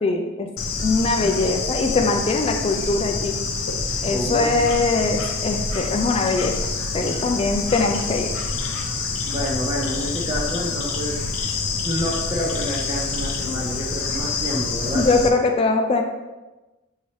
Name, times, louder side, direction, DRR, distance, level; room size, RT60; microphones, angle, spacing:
voice 1, 0.0-0.5 0.8-3.4 4.0-6.5 6.9-8.3 14.9-16.0, left 3 dB, 30° left, 3 dB, 0.3 m, -21 dB
Bird / Insect, 0.6-15.3, left 4 dB, 85° left, 0.5 m, -27 dB
voice 2, 4.1-4.7 9.3-11.5 11.8-15.0, equal, 20° right, -5 dB, 0.5 m, -28 dB
5.8 x 2.8 x 3.1 m, 1.1 s
head